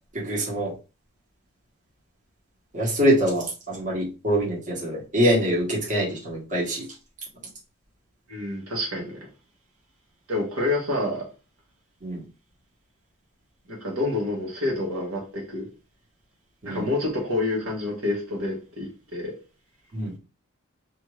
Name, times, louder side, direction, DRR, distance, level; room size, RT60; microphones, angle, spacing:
voice 1, 0.1-0.7 2.7-6.9 12.0-12.2 16.6-16.9 19.9-20.1, equal, 40° right, 1.1 m, -24 dB
voice 2, 8.3-9.2 10.3-11.3 13.7-15.7 16.6-19.3, left 2 dB, 85° right, 1.0 m, -28 dB
2.5 x 2.4 x 3.0 m
head